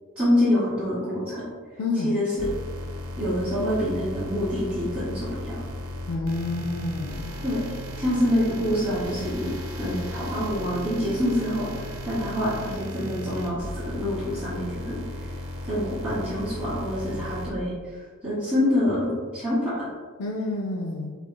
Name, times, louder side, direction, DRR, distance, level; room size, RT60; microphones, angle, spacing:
voice 1, 0.2-1.4 2.0-2.3 3.2-5.6 7.4-14.9 15.7-19.9, left 1 dB, 5° right, -14 dB, 1.2 m, -26 dB
voice 2, 1.8-2.2 6.1-7.3 17.1-17.3 20.2-21.1, left 2 dB, 90° left, -2 dB, 0.4 m, -29 dB
sound 1, 2.4-17.5, left 1 dB, 80° right, 0.7 m, -35 dB
4.3 x 2.6 x 2.3 m, 1.5 s
head